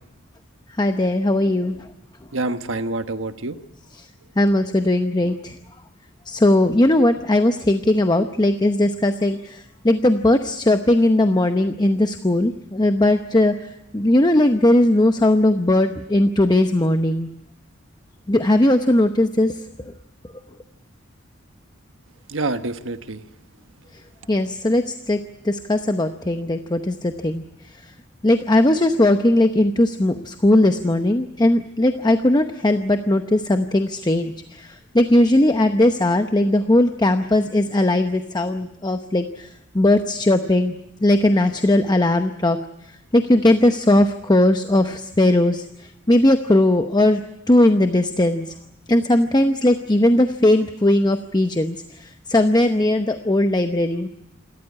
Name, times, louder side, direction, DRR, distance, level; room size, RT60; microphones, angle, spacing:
voice 1, 0.8-1.8 4.4-5.6 6.3-13.5 13.9-17.3 18.3-19.5 24.3-25.2 25.4-27.4 28.2-39.5 39.7-40.7 41.0-42.6 43.1-45.6 46.1-48.5 48.9-51.8 52.0-54.1, left 1 dB, 20° left, 7 dB, 0.8 m, -18 dB
voice 2, 2.3-3.6 22.3-23.2, right 2 dB, 75° right, 9 dB, 1.3 m, -27 dB
28.0 x 13.5 x 9.7 m, 0.87 s
head